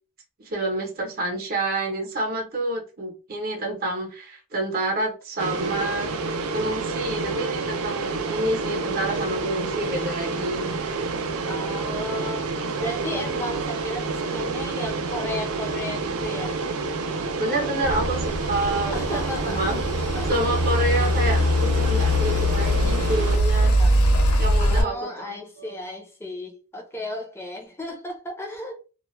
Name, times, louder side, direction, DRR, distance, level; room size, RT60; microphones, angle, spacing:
voice 1, 0.4-6.2 6.5-11.1 17.4-19.8 20.3-23.8 24.4-25.7, right 1 dB, 40° right, 0.8 m, -28 dB
sound 1, 5.4-23.4, right 3 dB, 70° right, 0.5 m, -29 dB
voice 2, 11.5-16.6 18.9-19.7 20.1-20.6 23.8-24.0 24.6-28.8, left 1 dB, 10° left, 0.6 m, -34 dB
sound 2, 17.8-24.8, equal, 80° left, 0.7 m, -22 dB
2.3 x 2.1 x 3.0 m
head